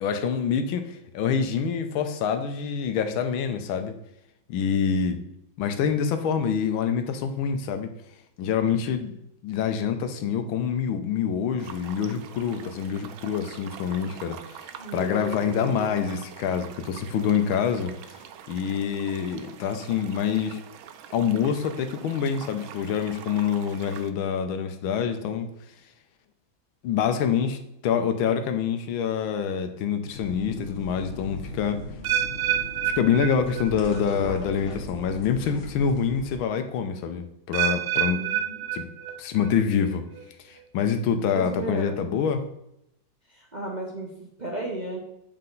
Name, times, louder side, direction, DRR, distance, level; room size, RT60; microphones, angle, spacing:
voice 1, 0.0-3.9 4.5-5.2 5.6-7.9 8.4-9.1 9.4-14.7 14.9-17.9 18.5-20.6 21.1-25.5 26.8-31.8 32.9-38.2 38.7-38.9 39.2-40.0 40.5-42.4, left 7 dB, 90° left, 7 dB, 1.5 m, -26 dB
sound 1, 11.6-24.1, right 9 dB, 90° right, 1.4 m, -45 dB
voice 2, 14.7-16.1 38.1-38.6 41.3-42.0 43.3-45.0, right 1 dB, 35° right, -3 dB, 0.8 m, -35 dB
sound 2, 30.1-36.4, left 2 dB, 45° left, 1.1 m, -38 dB
sound 3, 32.0-34.1 34.3-34.8 35.4-35.5 37.5-39.5 39.8-40.2 40.9-41.0, right 11 dB, 75° right, 1.0 m, -28 dB
7.5 x 4.4 x 3.9 m, 0.80 s
omnidirectional pair, 2.2 m